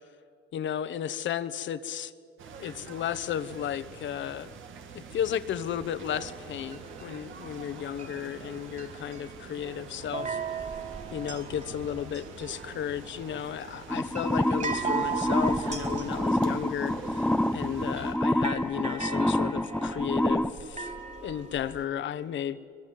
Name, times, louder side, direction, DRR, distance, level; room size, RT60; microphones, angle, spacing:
voice 1, 0.5-2.1 2.6-4.5 4.9-10.6 11.1-20.9 21.2-22.6, left 9 dB, 70° left, 14 dB, 1.2 m, -34 dB
sound 1, 2.4-18.1, right 6 dB, 80° right, 2.3 m, -46 dB
sound 2, 5.7-21.8, right 5 dB, 40° right, 4.2 m, -39 dB
sound 3, 13.9-20.5, left 1 dB, 5° left, 0.8 m, -27 dB
23.5 x 21.5 x 9.3 m, 2.4 s
cardioid pair, 90°, 20 cm